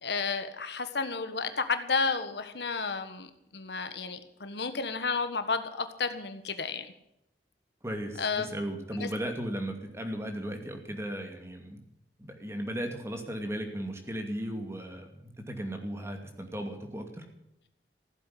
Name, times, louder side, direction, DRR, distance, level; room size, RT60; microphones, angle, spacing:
voice 1, 0.0-6.9 8.2-8.5 8.9-9.1, left 4 dB, 70° left, 9 dB, 1.5 m, -32 dB
voice 2, 7.8-11.8 12.2-17.2, equal, 15° right, 4 dB, 2.5 m, -36 dB
15.5 x 8.2 x 9.5 m, 0.82 s
head